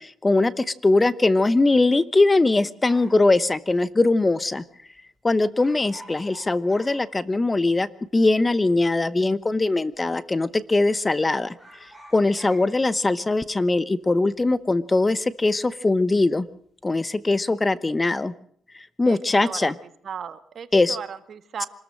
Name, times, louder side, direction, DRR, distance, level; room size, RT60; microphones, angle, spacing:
voice 1, 0.0-4.6 5.2-7.9 8.1-11.5 11.8-16.5 16.8-18.3 18.7-19.7 20.7-21.0, left 2 dB, 20° left, 17 dB, 0.9 m, -21 dB
sound 1, 2.9-4.3 4.6-4.7 4.9-5.2 5.5-7.8 8.1-8.2 9.0-9.6 9.9-10.2 10.5-11.1 11.4-16.1 16.4-16.8, right 1 dB, ahead, 7.5 m, -50 dB
voice 2, 19.0-19.7 20.0-21.7, right 7 dB, 55° right, 12 dB, 1.7 m, -36 dB
25.5 x 14.0 x 7.7 m, 0.64 s
cardioid pair, 90°, 0 cm